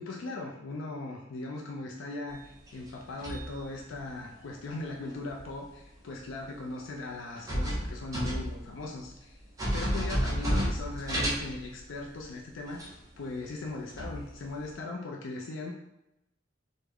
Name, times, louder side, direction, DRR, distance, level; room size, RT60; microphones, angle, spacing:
voice 1, 0.0-9.4 9.7-12.8 13.2-15.8, left 2 dB, 85° left, 0 dB, 0.4 m, -39 dB
sound 1, 2.4-4.1 5.3-5.4 6.3-6.4 7.4-8.8 9.1-9.2 9.6-12.0 12.8-12.9 13.3-13.5 13.9-14.7, equal, 15° right, 0.7 m, -31 dB
3.4 x 2.1 x 3.4 m, 0.90 s
head